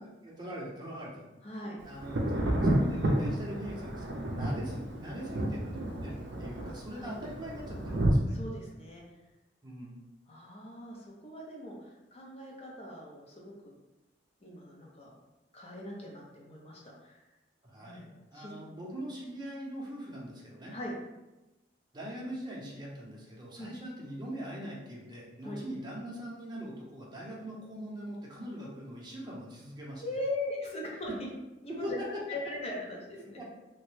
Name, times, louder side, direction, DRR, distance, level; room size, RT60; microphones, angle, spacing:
voice 1, 0.0-1.3 1.6-8.4 9.6-10.0 17.6-20.7 21.9-30.0 31.7-32.1 33.1-33.4, equal, 25° right, -4 dB, 0.7 m, -42 dB
voice 2, 1.4-1.8 7.0-7.1 8.3-9.0 10.3-13.5 14.4-15.1 15.5-17.2 17.8-18.8 20.7-20.9 23.6-23.7 25.4-25.6 30.0-31.3 31.6-32.0 32.3-33.4, left 1 dB, 35° left, -2 dB, 0.6 m, -40 dB
Thunder, 2.0-8.1, right 1 dB, 75° right, 0.5 m, -31 dB
3.0 x 2.1 x 3.1 m, 1.0 s
head